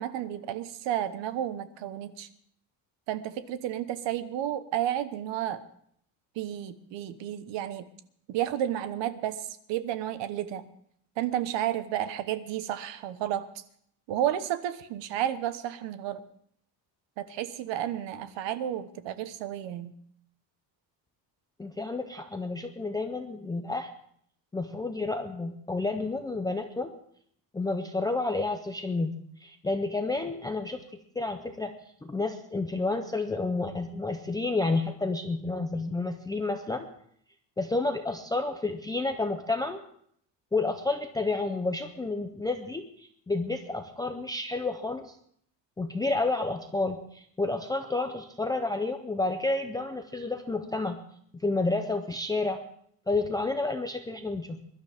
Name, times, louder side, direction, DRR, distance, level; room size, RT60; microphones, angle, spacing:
voice 1, 0.0-2.3 3.1-5.6 6.4-7.8 8.3-10.6 11.2-13.5 14.1-16.2 17.2-19.9, right 11 dB, 75° right, 11 dB, 1.2 m, -32 dB
voice 2, 21.6-23.9 24.5-26.9 27.5-29.1 29.4-30.8 31.2-31.7 32.0-36.9 37.6-39.8 40.5-45.2 45.8-51.0 51.3-52.6 53.1-54.6, left 3 dB, 10° left, 6 dB, 0.5 m, -30 dB
22.5 x 12.0 x 3.5 m, 0.66 s
cardioid pair, 180°, 44 cm